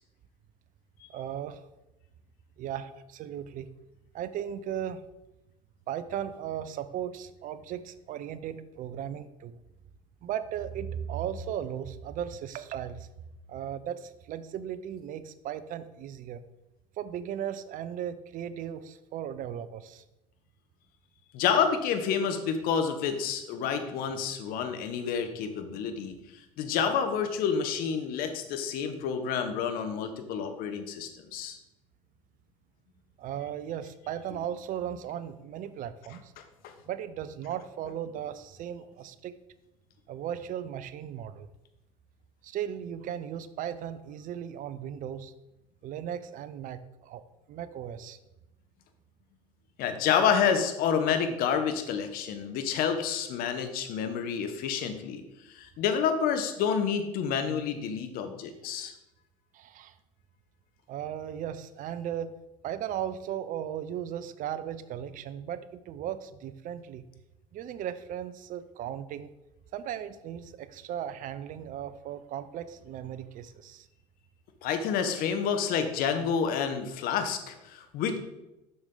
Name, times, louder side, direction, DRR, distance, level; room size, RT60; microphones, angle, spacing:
voice 1, 1.1-1.6 2.6-3.7 4.1-5.0 5.9-9.6 10.2-13.1 13.5-16.4 17.0-20.0 33.2-36.3 36.9-39.3 40.1-41.5 42.4-45.3 45.8-47.2 47.5-48.2 59.5-60.0 60.9-62.3 62.6-67.0 67.5-69.3 69.7-73.9, right 9 dB, 55° right, 13 dB, 0.6 m, -36 dB
voice 2, 21.3-26.1 26.6-31.6 36.6-36.7 49.8-55.2 55.5-58.9 74.6-78.2, left 7 dB, 65° left, 8 dB, 1.1 m, -29 dB
6.8 x 6.4 x 3.9 m, 0.94 s
hypercardioid pair, 70°, 16 cm